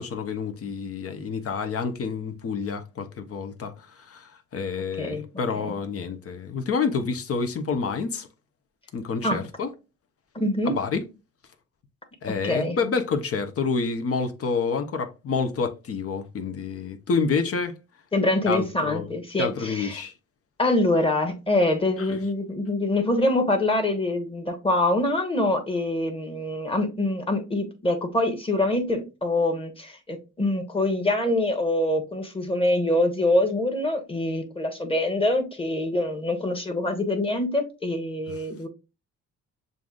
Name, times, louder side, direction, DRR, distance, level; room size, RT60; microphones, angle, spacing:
voice 1, 0.0-8.3 8.9-9.7 10.6-11.0 12.2-17.7 18.5-19.1 19.4-20.1 22.0-22.2 38.3-38.4, left 5 dB, 50° left, 0.8 m, -28 dB
voice 2, 10.3-10.7 12.4-12.8 18.1-20.0 20.6-38.7, left 1 dB, 20° left, 1.2 m, -25 dB
6.8 x 2.5 x 2.4 m
cardioid pair, 90°, 30 cm